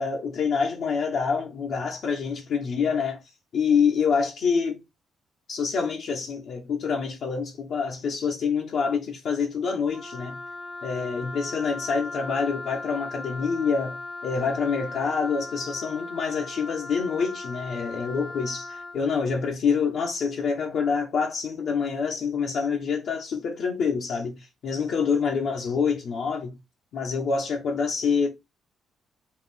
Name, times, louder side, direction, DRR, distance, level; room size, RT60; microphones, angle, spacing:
voice 1, 0.0-3.2 3.5-4.8 5.5-10.4 10.8-24.4 24.6-26.6 26.9-28.3, left 5 dB, 65° left, 1.0 m, -26 dB
Wind instrument woodwind instrument, 9.9-19.0, left 3 dB, 5° right, 0.8 m, -38 dB
4.1 x 2.5 x 4.0 m
cardioid pair, 90°, 0 cm